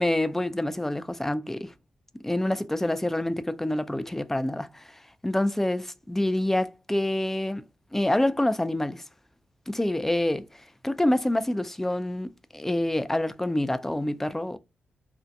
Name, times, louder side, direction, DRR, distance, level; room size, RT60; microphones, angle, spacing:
voice 1, 0.0-1.7 2.2-4.8 5.2-7.6 7.9-9.0 9.7-10.4 10.8-14.6, left 1 dB, 10° left, 0.3 m, -27 dB
2.6 x 2.1 x 2.4 m
cardioid pair, 70°, 4 cm